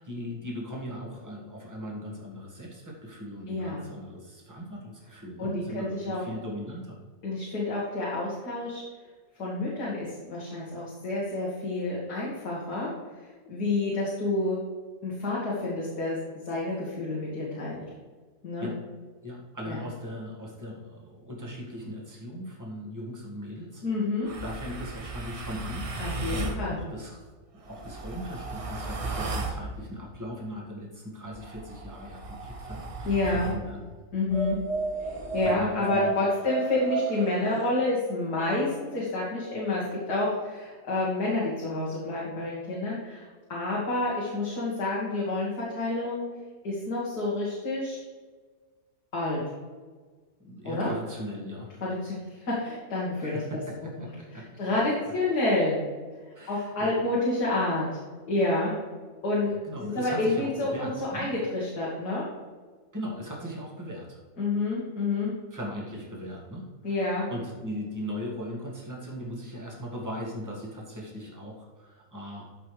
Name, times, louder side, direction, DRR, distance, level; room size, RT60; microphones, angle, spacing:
voice 1, 0.0-7.0 18.6-18.8 19.2-23.8 24.2-27.3 27.5-33.8 35.4-36.1 50.4-51.8 53.2-54.5 56.3-56.9 59.4-61.3 62.9-64.2 65.5-72.5, equal, 10° right, -3 dB, 1.8 m, -38 dB
voice 2, 3.5-3.9 5.4-6.2 7.2-8.8 9.4-12.9 13.5-14.6 15.0-16.2 16.4-17.8 18.4-18.7 19.7-19.8 23.8-24.3 26.0-26.8 33.0-33.5 34.1-34.6 35.3-43.2 43.5-46.2 46.6-48.0 49.1-49.4 50.6-50.9 51.8-53.4 54.0-54.1 54.6-55.8 56.5-57.9 58.3-58.7 59.2-62.2 64.4-65.3 66.8-67.2, left 2 dB, 85° left, -6 dB, 2.5 m, -29 dB
sound 1, 24.2-26.6 27.6-29.6 31.3-33.6 34.3-37.7, right 3 dB, 35° right, 0.6 m, -34 dB
13.5 x 5.6 x 3.3 m, 1.4 s
omnidirectional pair, 1.7 m